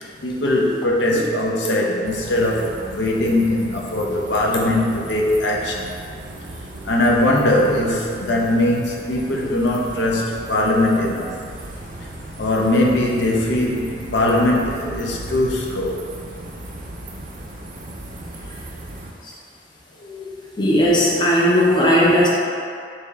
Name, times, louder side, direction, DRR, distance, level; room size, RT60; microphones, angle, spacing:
voice 1, 0.2-5.9 6.8-11.3 12.4-16.0 20.0-20.4, left 1 dB, 85° left, -1 dB, 0.6 m, -20 dB
sound 1, 2.0-19.1, right 1 dB, 45° right, 0.4 m, -36 dB
voice 2, 20.6-22.3, equal, 25° left, -5 dB, 0.5 m, -16 dB
6.6 x 2.8 x 2.3 m, 2.3 s
head